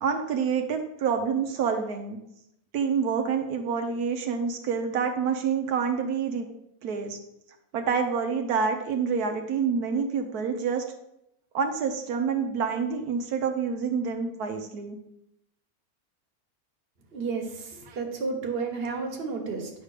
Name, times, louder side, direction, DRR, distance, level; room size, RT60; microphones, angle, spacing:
voice 1, 0.0-2.2 2.7-6.5 6.8-7.2 7.7-10.8 11.5-15.0 17.9-18.0, right 6 dB, 85° right, 5 dB, 1.3 m, -27 dB
voice 2, 17.1-19.7, right 4 dB, 40° right, 1 dB, 1.5 m, -32 dB
9.8 x 3.5 x 6.5 m, 0.81 s
omnidirectional pair, 1.6 m